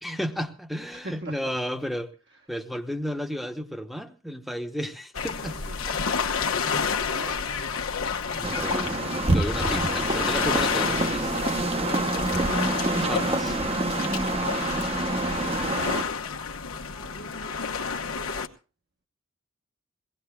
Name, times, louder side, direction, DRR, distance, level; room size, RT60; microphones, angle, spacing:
voice 1, 0.0-2.1 2.5-5.6 5.9-6.0 8.3-11.5 13.1-13.6, equal, ahead, 7 dB, 0.9 m, -33 dB
voice 2, 0.9-1.6 5.4-5.8 6.9-7.4 12.4-12.7 17.0-17.5, right 2 dB, 50° right, 2 dB, 1.1 m, -43 dB
sound 1, 5.1-18.5, left 5 dB, 85° left, 1.1 m, -30 dB
sound 2, 8.4-16.0, right 2 dB, 30° right, 0.8 m, -27 dB
22.5 x 17.5 x 2.3 m, 0.36 s
head